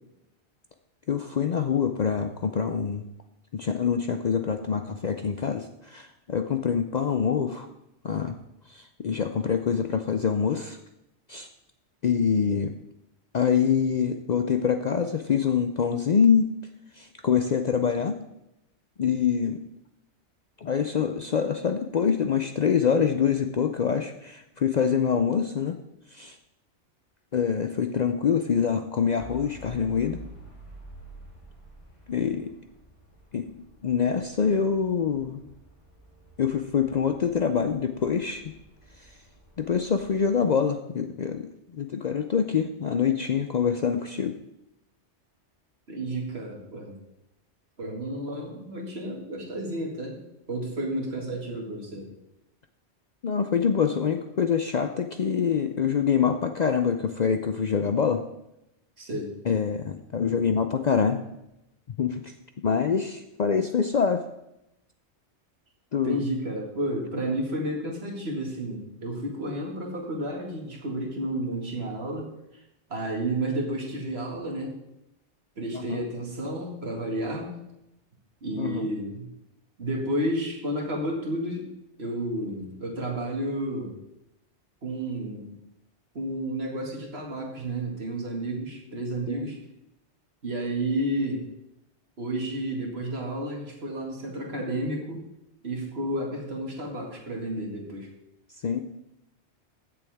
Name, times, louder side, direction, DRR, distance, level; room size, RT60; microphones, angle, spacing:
voice 1, 1.1-3.0 3.5-7.7 8.0-8.4 8.7-10.8 11.3-11.5 12.0-12.8 13.3-16.5 16.9-18.2 19.0-19.6 20.6-25.8 26.1-26.4 27.3-30.2 32.1-32.5 33.3-35.4 36.4-38.4 39.6-44.4 53.2-58.2 59.5-61.2 62.0-62.3 62.6-64.2 65.9-66.2 75.7-76.0 78.6-78.9 89.3-89.5 98.6-98.8, left 7 dB, 50° left, 7 dB, 0.5 m, -25 dB
sound 1, 29.2-40.4, equal, 25° left, 3.0 m, -49 dB
voice 2, 45.9-46.9 47.8-50.2 50.5-52.1 59.0-59.3 66.0-72.3 72.9-74.8 75.6-77.5 78.4-79.3 79.8-81.7 82.0-84.0 84.8-85.6 86.1-89.6 90.4-91.4 92.2-95.2 95.6-98.1, right 1 dB, 65° right, 0 dB, 2.3 m, -31 dB
15.5 x 7.0 x 3.5 m, 0.87 s
omnidirectional pair, 1.2 m